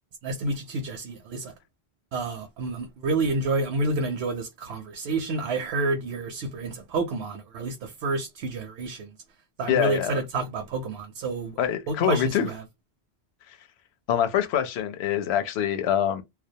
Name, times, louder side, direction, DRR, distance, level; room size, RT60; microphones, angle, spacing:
voice 1, 0.2-1.5 2.1-9.1 9.6-11.6 11.9-12.6, right 3 dB, 85° right, 0.8 m, -29 dB
voice 2, 9.7-10.2 11.6-12.5 13.5-13.6 14.1-16.2, left 9 dB, 90° left, 0.8 m, -25 dB
2.2 x 2.1 x 2.6 m
omnidirectional pair, 1.0 m